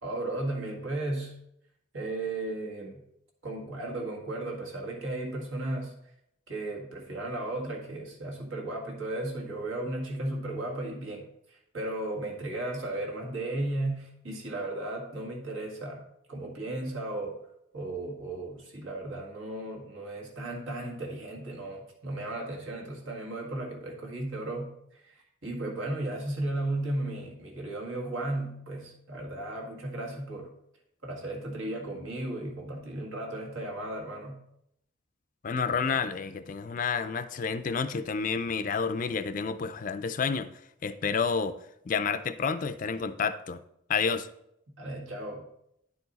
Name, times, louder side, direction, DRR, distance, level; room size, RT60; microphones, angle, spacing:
voice 1, 0.0-1.4 1.9-3.0 3.4-5.9 6.5-16.0 16.3-17.4 17.7-30.5 31.0-34.4 44.8-45.5, right 2 dB, 75° right, 0 dB, 1.8 m, -35 dB
voice 2, 35.4-40.5 40.8-41.6 41.9-43.6 43.9-44.3, left 5 dB, 40° left, 12 dB, 0.4 m, -29 dB
10.0 x 4.7 x 4.0 m, 0.77 s
head